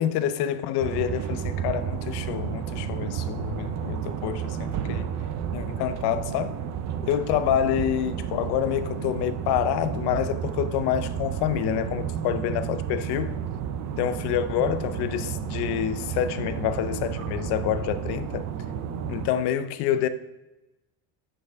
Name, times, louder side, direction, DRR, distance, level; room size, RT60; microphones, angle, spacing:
voice 1, 0.0-5.1 5.5-6.5 7.0-13.4 14.0-18.5 19.1-20.1, left 10 dB, 70° left, 0.6 m, -27 dB
sound 1, 0.8-19.3, right 8 dB, 45° right, 0.5 m, -32 dB
8.6 x 5.3 x 3.4 m
cardioid pair, 180°, 41 cm